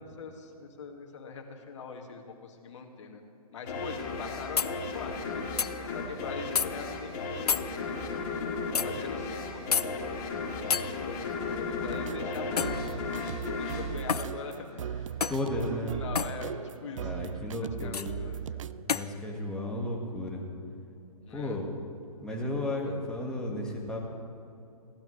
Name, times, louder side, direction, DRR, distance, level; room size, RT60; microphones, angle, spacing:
voice 1, 0.0-3.2 3.5-8.4 8.7-10.1 10.6-15.2 15.4-17.3 17.6-18.5 21.2-21.6, left 4 dB, 50° left, 2 dB, 2.0 m, -43 dB
sound 1, 3.7-14.9, left 4 dB, 35° left, 2.3 m, -35 dB
sound 2, 4.6-4.7 5.6-5.7 6.5-6.7 7.5-7.7 8.7-8.9 9.7-9.9 10.7-10.9 12.6-12.8 14.1-14.3 15.2-15.4 16.1-16.3 17.9-18.1 18.9-19.1, left 6 dB, 85° left, 0.6 m, -28 dB
sound 3, 11.9-18.8, right 9 dB, 55° right, 0.4 m, -38 dB
voice 2, 15.3-16.0 17.0-20.4 21.3-21.7 22.2-24.1, left 1 dB, 5° left, -2 dB, 1.7 m, -34 dB
21.0 x 16.0 x 3.2 m, 2.8 s
hypercardioid pair, 140°, 19 cm